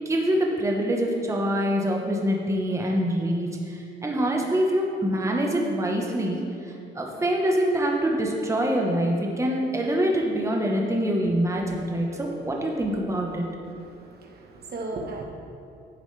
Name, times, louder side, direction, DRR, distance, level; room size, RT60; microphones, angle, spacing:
voice 1, 0.0-6.4 6.9-13.4, equal, 15° right, 0 dB, 1.1 m, -25 dB
voice 2, 13.6-15.2, right 2 dB, 55° right, 1 dB, 1.2 m, -36 dB
10.0 x 7.1 x 3.3 m, 2.5 s
cardioid pair, 90°, 20 cm